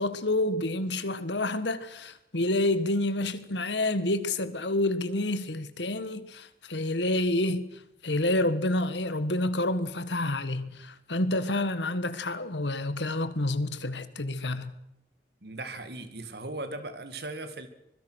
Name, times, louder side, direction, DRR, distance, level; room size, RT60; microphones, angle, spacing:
voice 1, 0.0-7.7 8.0-14.7, left 1 dB, 75° left, 1.7 m, -28 dB
voice 2, 15.4-17.7, right 2 dB, 60° right, 2.3 m, -38 dB
25.0 x 22.0 x 6.4 m
head